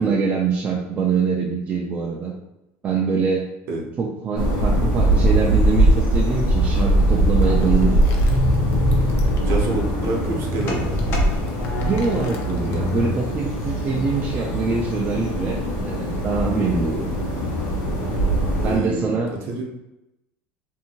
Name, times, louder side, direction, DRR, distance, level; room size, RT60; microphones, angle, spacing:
voice 1, 0.0-2.3 2.8-3.5 4.0-8.0 11.8-17.1 18.6-19.3, right 5 dB, 30° right, -2 dB, 0.4 m, -24 dB
sound 1, 4.4-18.8, right 1 dB, 70° left, 0.9 m, -21 dB
sound 2, 7.4-13.1, left 3 dB, 40° left, 0.5 m, -27 dB
voice 2, 9.4-11.0 18.6-19.6, right 2 dB, 50° right, 0 dB, 0.7 m, -27 dB
2.7 x 2.6 x 2.8 m, 0.92 s
cardioid pair, 135°, 6 cm